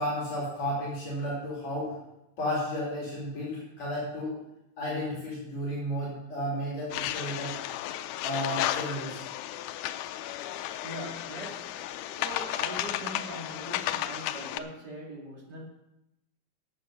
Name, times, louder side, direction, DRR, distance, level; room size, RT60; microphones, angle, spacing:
voice 1, 0.0-2.0 2.4-4.4 4.8-7.6 8.2-9.2, equal, 55° left, -6 dB, 4.0 m, -33 dB
sound 1, 6.9-14.6, left 13 dB, 80° left, 2.0 m, -33 dB
voice 2, 10.8-11.8 12.2-15.6, right 1 dB, 35° right, -2 dB, 2.5 m, -41 dB
11.5 x 7.5 x 5.6 m, 0.87 s
omnidirectional pair, 3.8 m